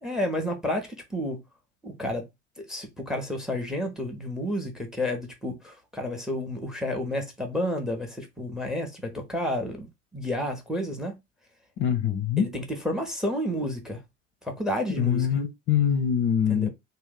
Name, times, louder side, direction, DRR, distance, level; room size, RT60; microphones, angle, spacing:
voice 1, 0.0-1.4 1.8-2.2 2.6-11.1 12.4-14.0 14.4-15.3 16.5-16.7, left 1 dB, ahead, 0.8 m, -31 dB
voice 2, 11.8-12.5 15.0-16.7, left 8 dB, 35° left, 0.6 m, -24 dB
2.7 x 2.1 x 3.7 m
figure-of-eight pair, 65°, 36 cm